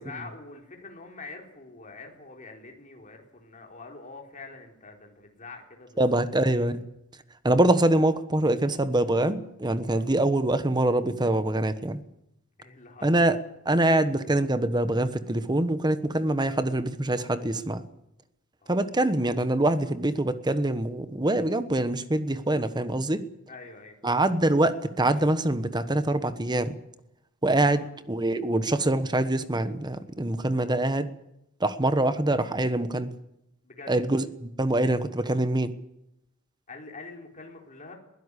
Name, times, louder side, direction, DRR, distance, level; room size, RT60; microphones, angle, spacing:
voice 1, 0.0-6.2 9.9-10.1 12.6-13.1 18.6-19.0 23.5-23.9 27.6-27.8 33.6-33.9 36.7-37.9, left 3 dB, 35° left, 2 dB, 4.3 m, -45 dB
voice 2, 6.0-6.8 7.4-12.0 13.0-13.4 13.6-17.8 18.7-23.2 24.0-26.8 27.4-27.8 28.1-31.1 31.6-33.1 33.9-35.7, right 1 dB, 20° right, 12 dB, 1.2 m, -24 dB
22.0 x 16.0 x 8.4 m, 0.86 s
head